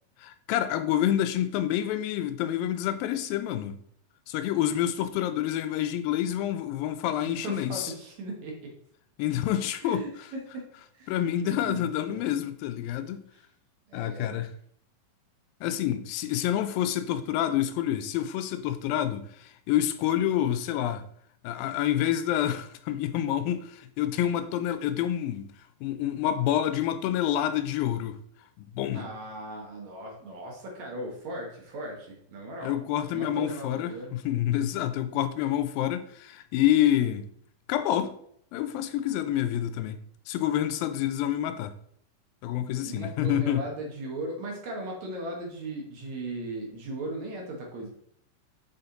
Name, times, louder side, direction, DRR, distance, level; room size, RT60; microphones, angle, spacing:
voice 1, 0.2-3.8 4.3-7.9 9.2-10.3 11.1-13.2 13.9-14.5 15.6-21.1 21.4-25.5 25.8-28.2 28.6-29.1 32.6-37.3 37.7-38.2 38.5-41.8 42.4-43.7, left 11 dB, 85° left, 2.3 m, -28 dB
voice 2, 7.3-8.7 9.8-10.7 10.9-12.3 13.9-14.4 28.9-32.7 33.1-34.1 42.7-47.9, right 2 dB, 60° right, 2.2 m, -37 dB
6.3 x 5.7 x 3.9 m
omnidirectional pair, 4.2 m